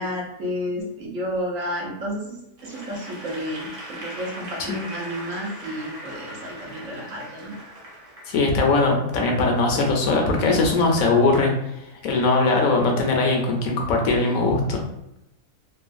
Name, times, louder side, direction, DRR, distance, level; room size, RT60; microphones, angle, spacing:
voice 1, 0.0-2.4 2.6-7.5, equal, 65° right, -3 dB, 1.2 m, -31 dB
Applause / Crowd, 2.6-8.8, right 1 dB, 45° right, 0.4 m, -39 dB
voice 2, 8.3-11.5 12.0-14.8, left 3 dB, 70° left, 1 dB, 1.0 m, -20 dB
3.0 x 2.3 x 2.5 m, 0.86 s
omnidirectional pair, 1.6 m